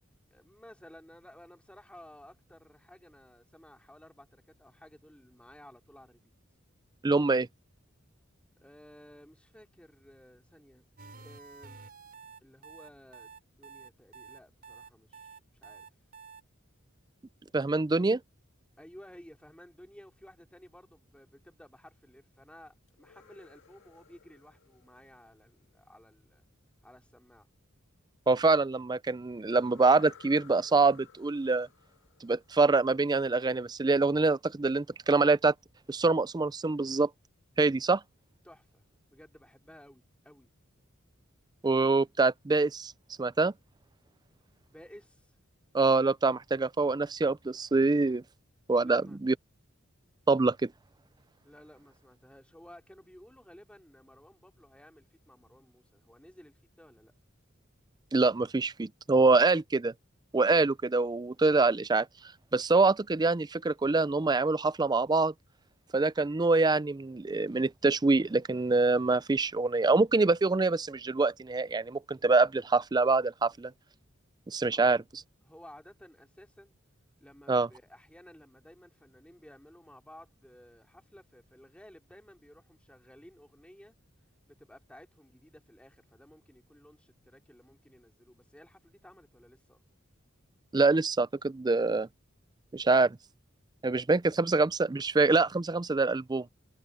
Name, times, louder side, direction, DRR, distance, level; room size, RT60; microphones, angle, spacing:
voice 1, 0.3-6.3 8.6-10.9 11.2-11.8 12.4-15.9 18.8-26.5 26.8-27.5 38.4-40.5 44.7-45.4 48.8-49.2 51.4-57.1 74.7-74.9 75.4-76.7 77.2-84.0 84.5-89.8, equal, 5° left, 3.5 m, -55 dB
voice 2, 7.0-7.5 17.5-18.2 28.3-31.7 32.2-35.5 35.9-37.1 37.6-38.0 41.6-42.9 43.2-43.5 45.7-48.2 48.7-49.3 50.3-50.7 58.1-59.9 60.3-62.1 62.5-65.3 65.9-73.7 74.5-75.0 77.5-77.7 90.7-92.1 92.7-93.2 93.8-96.5, right 3 dB, 20° right, 0.4 m, -25 dB
sound 1, 11.0-16.4, right 5 dB, 45° right, 5.7 m, -50 dB
sound 2, 22.9-25.8 29.5-33.2, left 7 dB, 65° left, 2.1 m, -58 dB
head